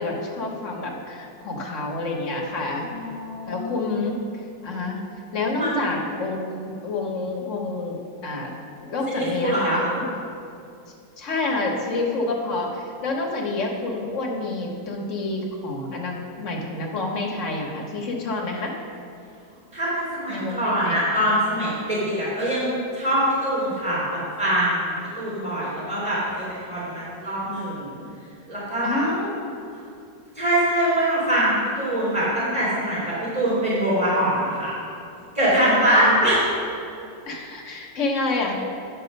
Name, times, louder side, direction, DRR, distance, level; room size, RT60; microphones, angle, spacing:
voice 1, 0.0-2.9 3.5-4.2 4.6-5.0 5.3-8.5 8.8-10.1 11.2-18.7 20.3-21.0 28.8-29.5 36.0-36.1 37.3-38.5, left 2 dB, 45° left, 0 dB, 1.4 m, -28 dB
voice 2, 2.9-3.8 5.5-5.8 9.1-9.9 19.7-27.9 28.5-29.1 30.4-34.7 35.3-36.4, right 1 dB, 15° right, -8 dB, 2.5 m, -23 dB
10.5 x 6.5 x 5.3 m, 2.5 s
omnidirectional pair, 2.0 m